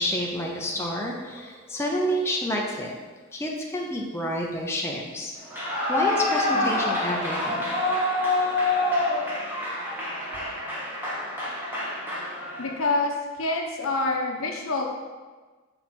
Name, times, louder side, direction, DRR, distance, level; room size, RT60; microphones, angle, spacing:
voice 1, 0.0-2.9 3.3-5.3 5.9-7.8, equal, 10° left, -1 dB, 0.6 m, -29 dB
Clapping / Cheering / Applause, 5.4-12.8, left 2 dB, 10° right, 1.3 m, -27 dB
voice 2, 12.6-15.0, left 2 dB, 65° left, 1 dB, 0.9 m, -27 dB
6.1 x 4.5 x 4.2 m, 1.3 s
head